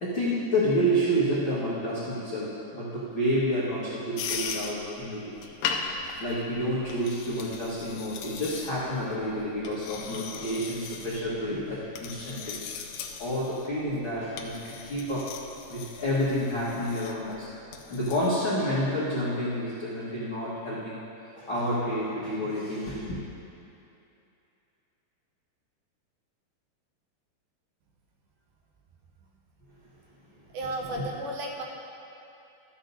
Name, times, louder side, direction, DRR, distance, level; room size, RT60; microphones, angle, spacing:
voice 1, 0.0-5.3 6.2-12.6 13.2-15.4 15.7-17.5 17.9-21.0 21.3-23.2 30.9-31.0, equal, 65° left, -10 dB, 1.2 m, -29 dB
sound 1, 4.2-18.3, left 6 dB, 85° left, 2.2 m, -39 dB
voice 2, 30.5-31.6, right 1 dB, 75° right, 0 dB, 2.4 m, -33 dB
13.0 x 10.0 x 2.7 m, 2.8 s
omnidirectional pair, 4.7 m